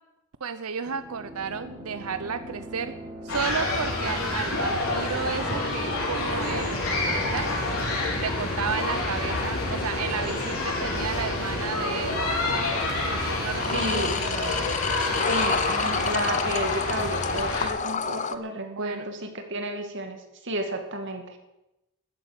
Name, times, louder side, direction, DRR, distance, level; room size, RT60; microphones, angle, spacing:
voice 1, 0.4-2.9 3.2-7.5 8.2-12.4 13.0-14.8 18.6-19.1, right 6 dB, 85° right, 11 dB, 0.7 m, -33 dB
sound 1, 0.9-13.9, equal, 10° right, 3.9 m, -41 dB
sound 2, 3.3-17.7, left 2 dB, 70° left, 5.0 m, -28 dB
sound 3, 4.5-18.4, left 5 dB, 35° left, 0.8 m, -32 dB
voice 2, 13.7-14.2 15.3-20.2 20.4-21.3, right 1 dB, 55° right, 5 dB, 2.2 m, -32 dB
14.0 x 9.6 x 8.8 m, 0.95 s
head